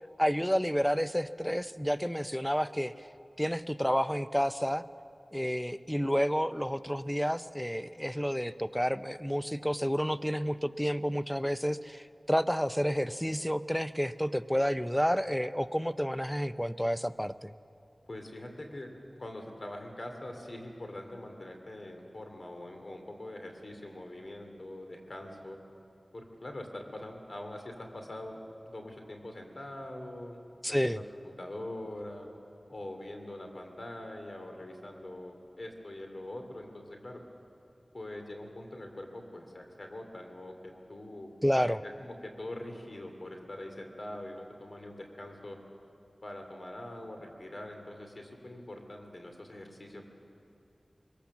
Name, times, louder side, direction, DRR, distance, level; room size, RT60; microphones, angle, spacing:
voice 1, 0.2-2.9 3.4-4.8 5.3-17.5 30.6-31.0 41.4-41.8, equal, 5° left, 13 dB, 0.5 m, -30 dB
voice 2, 18.1-18.9 19.2-25.6 26.1-30.4 30.7-31.0 31.4-32.3 32.7-37.2 37.9-41.3 41.8-45.6 46.2-50.0, left 1 dB, 55° left, 3 dB, 2.6 m, -43 dB
22.5 x 17.5 x 7.2 m, 2.6 s
wide cardioid pair, 60°, 0 cm